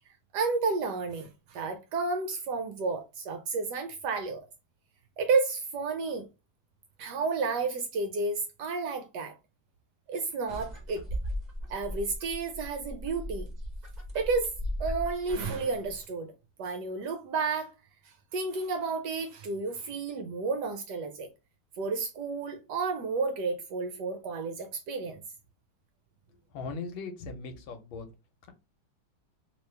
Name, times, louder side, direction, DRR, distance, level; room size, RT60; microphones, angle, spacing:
voice 1, 0.3-4.4 5.2-6.3 7.0-9.3 10.1-11.0 11.7-13.5 14.1-14.5 14.8-16.3 16.6-17.7 18.3-21.3 21.8-25.2, right 4 dB, 70° right, 1.0 m, -31 dB
sound 1, 10.5-16.0, equal, 35° right, 0.7 m, -37 dB
voice 2, 26.5-28.1, left 4 dB, 85° left, 1.5 m, -38 dB
3.0 x 3.0 x 3.2 m
omnidirectional pair, 2.2 m